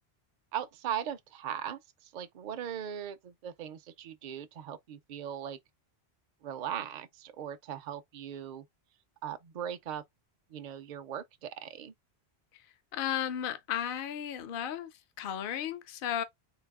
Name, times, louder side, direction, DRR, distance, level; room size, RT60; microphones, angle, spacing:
voice 1, 0.5-5.6 6.4-8.7 9.2-10.0 10.5-11.9, right 9 dB, 55° right, 0.6 m, -39 dB
voice 2, 12.9-14.9 15.2-16.2, left 10 dB, 60° left, 0.7 m, -34 dB
4.0 x 2.7 x 3.5 m
omnidirectional pair, 1.1 m